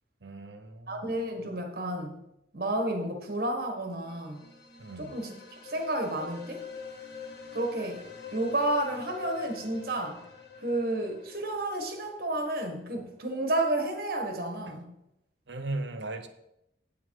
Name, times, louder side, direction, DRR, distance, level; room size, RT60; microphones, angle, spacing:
voice 1, 0.2-1.0 4.8-5.2 14.7-14.8 15.5-16.3, right 2 dB, 75° right, 0.9 m, -37 dB
voice 2, 0.9-2.2 2.5-4.4 5.0-6.7 7.5-10.3 10.6-14.9, right 1 dB, 55° right, 1.4 m, -31 dB
sound 1, 3.9-12.7, left 6 dB, 60° left, 1.4 m, -46 dB
8.3 x 8.3 x 4.7 m
head